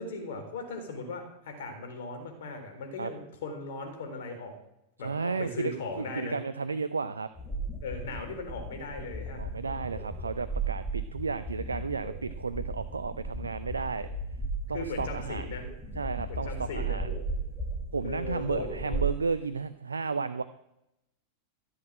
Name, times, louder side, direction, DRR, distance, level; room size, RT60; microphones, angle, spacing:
voice 1, 0.0-4.5 5.0-6.4 7.8-9.4 14.7-15.7 16.3-17.2 18.0-19.0, left 3 dB, 60° left, 4 dB, 4.0 m, -38 dB
voice 2, 5.0-7.3 9.3-14.1 14.7-15.6 16.0-17.1 17.9-20.4, right 4 dB, 80° right, 13 dB, 0.5 m, -33 dB
sound 1, 7.4-19.1, right 3 dB, 10° left, 4.3 m, -36 dB
14.5 x 8.1 x 7.6 m, 0.86 s
figure-of-eight pair, 90°, 0 cm